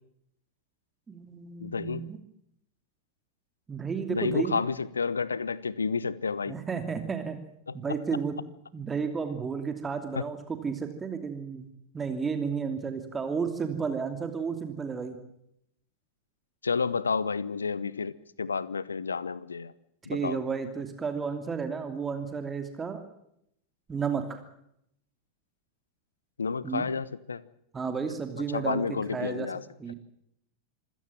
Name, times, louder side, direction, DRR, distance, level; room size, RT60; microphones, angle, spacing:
voice 1, 1.1-2.2 3.7-4.6 6.5-7.4 7.7-8.4 8.7-15.2 20.1-23.0 23.9-24.4 26.6-26.8 27.7-28.8 29.1-29.5 29.8-29.9, right 6 dB, 15° right, 7 dB, 2.8 m, -32 dB
voice 2, 1.6-2.1 4.1-6.5 7.7-7.8 10.1-10.3 16.6-19.7 20.0-20.4 26.4-27.4 28.5-29.6, left 5 dB, 75° left, 19 dB, 1.1 m, -30 dB
26.5 x 16.5 x 7.4 m, 0.74 s
figure-of-eight pair, 90°, 0 cm